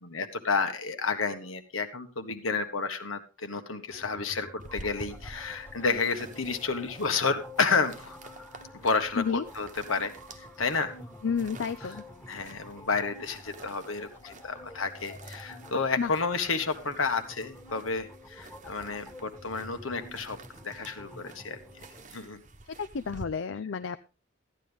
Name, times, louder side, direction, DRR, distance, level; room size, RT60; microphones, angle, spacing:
voice 1, 0.0-8.1 8.7-10.9 11.8-11.9 12.3-21.6 22.1-22.4, left 4 dB, 85° left, 8 dB, 1.5 m, -31 dB
sound 1, 3.9-22.0, left 1 dB, 10° left, 1.5 m, -49 dB
sound 2, 4.6-23.3, right 2 dB, 35° right, 1.0 m, -50 dB
voice 2, 11.2-12.0 16.0-16.1 22.7-24.0, left 6 dB, 70° left, 11 dB, 0.5 m, -31 dB
14.0 x 10.0 x 3.5 m, 0.33 s
head